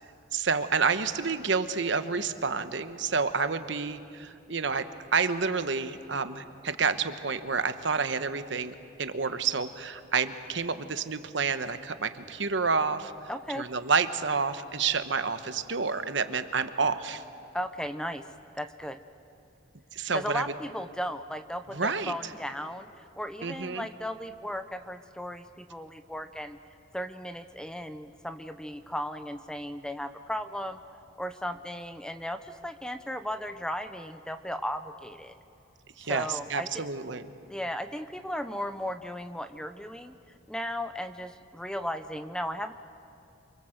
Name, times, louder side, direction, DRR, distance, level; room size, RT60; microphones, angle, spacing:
voice 1, 0.3-4.9 5.1-13.1 13.6-17.2 19.9-20.4 21.7-22.1 23.4-23.9 36.0-37.2, right 5 dB, 65° right, 10 dB, 1.1 m, -29 dB
voice 2, 13.3-13.7 17.5-18.3 18.5-19.0 20.1-26.6 26.9-30.8 31.2-35.3 36.0-36.8 37.5-40.1 40.5-42.7, equal, 5° left, 10 dB, 0.7 m, -36 dB
28.0 x 24.5 x 7.9 m, 2.6 s
head